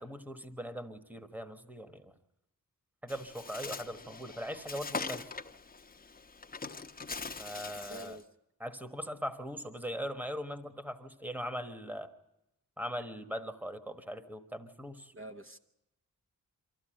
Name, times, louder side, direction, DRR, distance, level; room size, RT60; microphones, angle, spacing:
voice 1, 0.0-2.1 3.0-5.3 7.4-8.2 8.6-12.1 12.8-15.1, equal, 5° right, 9 dB, 1.3 m, -40 dB
Bird, 3.1-8.2, left 4 dB, 25° left, 0.9 m, -42 dB
voice 2, 7.9-8.3 15.1-15.6, right 1 dB, 40° right, 5 dB, 1.0 m, -46 dB
24.5 x 14.5 x 8.9 m, 0.88 s
wide cardioid pair, 175°, 34 cm